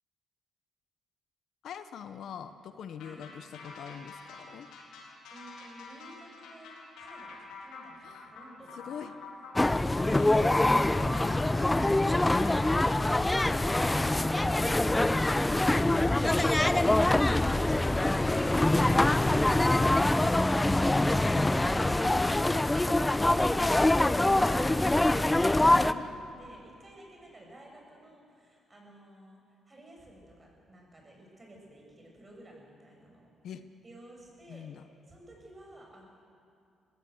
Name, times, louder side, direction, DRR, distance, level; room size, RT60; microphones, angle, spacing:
voice 1, 1.6-4.7 8.0-8.3 8.7-9.1 10.0-10.4 10.8-12.1 15.8-16.1 25.9-26.3 33.4-33.6 34.5-34.8, left 8 dB, 70° left, 10 dB, 0.9 m, -44 dB
sound 1, 3.0-13.1, left 3 dB, 85° left, 3.7 m, -47 dB
voice 2, 5.3-9.1 23.6-33.3 33.8-34.7 35.1-36.1, right 1 dB, 25° right, -1 dB, 7.0 m, -53 dB
sound 2, 9.6-25.9, left 2 dB, 15° left, 0.6 m, -24 dB
20.5 x 15.5 x 8.0 m, 2.4 s
cardioid pair, 90°, 0 cm